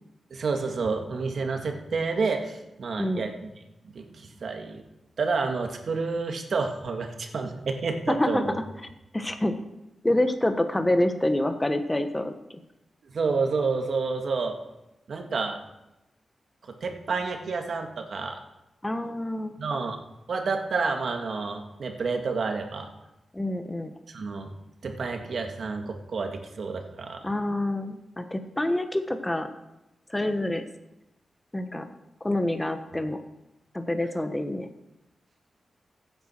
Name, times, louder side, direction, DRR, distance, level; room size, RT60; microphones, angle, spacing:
voice 1, 0.3-3.5 3.9-4.8 5.2-8.6 13.1-14.6 15.1-15.6 16.7-18.4 19.6-20.0 20.3-22.9 24.1-24.6 24.8-27.2, right 4 dB, 70° right, 4 dB, 1.8 m, -29 dB
voice 2, 3.0-3.3 8.1-8.4 9.1-9.5 10.0-12.3 18.8-19.6 23.3-23.9 27.2-29.5 30.1-30.6 31.5-31.8 32.2-33.2 33.7-34.7, left 1 dB, 15° left, 7 dB, 1.2 m, -27 dB
15.0 x 8.9 x 4.5 m, 0.93 s
cardioid pair, 65°, 0 cm